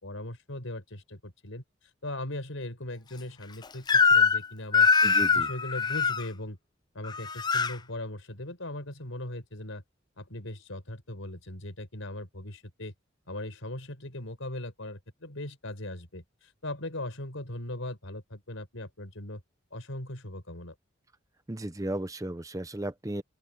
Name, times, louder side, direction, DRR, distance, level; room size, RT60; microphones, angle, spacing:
voice 1, 0.0-1.6 2.0-4.9 5.3-6.6 6.9-9.8 10.2-12.9 13.3-19.4 19.7-20.7, left 1 dB, 80° left, 4.4 m, -39 dB
Crying sobbing / Screech, 3.9-4.4 4.7-6.2 7.0-7.7, left 5 dB, 20° left, 0.4 m, -22 dB
voice 2, 5.0-5.5 21.5-23.2, right 1 dB, 15° right, 0.7 m, -34 dB
open air
head